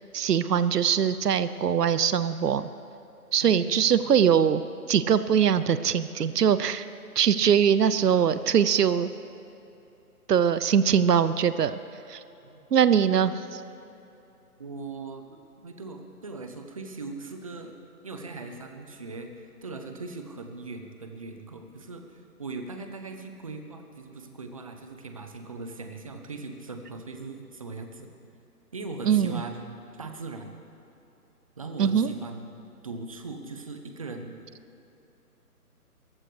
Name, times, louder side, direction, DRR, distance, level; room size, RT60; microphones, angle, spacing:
voice 1, 0.1-2.7 3.3-4.6 4.9-6.9 7.2-9.1 10.3-11.7 12.1-12.2 12.7-13.6 29.1-29.4 31.8-32.1, right 8 dB, 80° right, 13 dB, 0.8 m, -22 dB
voice 2, 3.4-4.0 12.4-12.6 14.6-17.8 18.0-28.1 28.7-30.5 31.6-32.5 32.8-34.5, right 3 dB, 20° right, 5 dB, 0.8 m, -40 dB
28.5 x 15.0 x 3.3 m, 2.9 s
hypercardioid pair, 160°, 47 cm